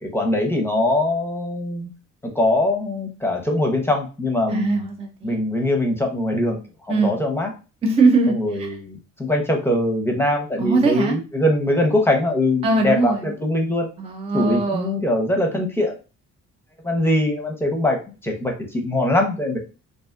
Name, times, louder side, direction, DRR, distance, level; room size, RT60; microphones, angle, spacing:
voice 1, 0.0-1.9 2.2-4.9 5.2-7.5 8.3-13.9 14.3-15.9 16.8-19.6, left 1 dB, 10° left, 2 dB, 0.7 m, -22 dB
voice 2, 4.5-5.4 6.9-7.1 7.8-8.7 10.6-11.2 12.6-13.2 14.0-15.0, right 3 dB, 20° right, 4 dB, 0.4 m, -20 dB
2.5 x 2.3 x 2.4 m, 0.32 s
cardioid pair, 90°, 30 cm